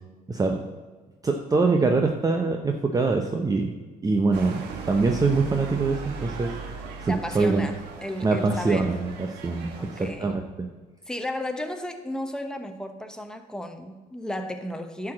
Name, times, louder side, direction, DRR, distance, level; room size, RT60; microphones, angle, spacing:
voice 1, 0.3-0.6 1.2-3.7 4.0-6.5 7.0-7.6 8.2-10.7, right 3 dB, 20° right, 4 dB, 0.8 m, -24 dB
sound 1, 4.3-10.1, right 5 dB, 90° right, 1.3 m, -38 dB
voice 2, 7.1-8.9 9.8-10.3 11.1-15.1, left 1 dB, 5° left, 6 dB, 1.0 m, -34 dB
10.5 x 4.9 x 7.4 m, 1.4 s
cardioid pair, 110°, 17 cm